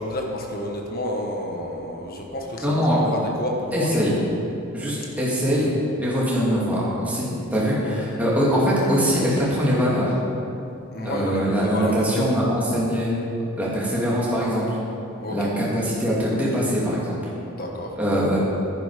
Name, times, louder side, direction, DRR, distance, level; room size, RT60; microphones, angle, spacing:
voice 1, 0.0-3.9 7.9-8.0 10.9-12.3 15.2-15.8 17.5-18.0, left 1 dB, 40° left, 1 dB, 1.3 m, -30 dB
voice 2, 2.6-3.1 3.7-4.2 4.7-5.7 6.0-10.1 11.0-13.1 13.6-14.8 15.3-17.2 18.0-18.4, equal, 5° right, -7 dB, 2.5 m, -22 dB
11.0 x 10.0 x 5.1 m, 2.7 s
head